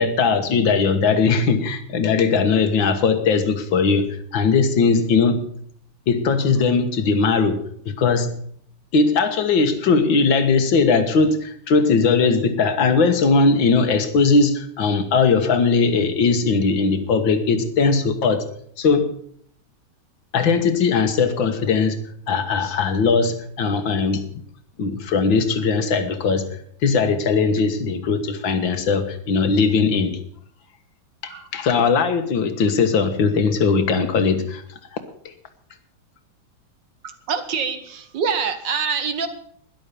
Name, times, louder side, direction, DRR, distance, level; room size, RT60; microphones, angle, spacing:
voice 1, 0.0-5.5 6.1-7.6 7.9-8.4 8.9-18.4 18.8-19.1 20.3-22.0 22.3-24.3 24.8-26.5 26.8-30.2 31.2-34.6, left 4 dB, 85° left, 9 dB, 2.1 m, -19 dB
voice 2, 37.3-39.3, right 6 dB, 70° right, 9 dB, 2.0 m, -25 dB
12.5 x 11.0 x 6.9 m, 0.63 s
omnidirectional pair, 2.0 m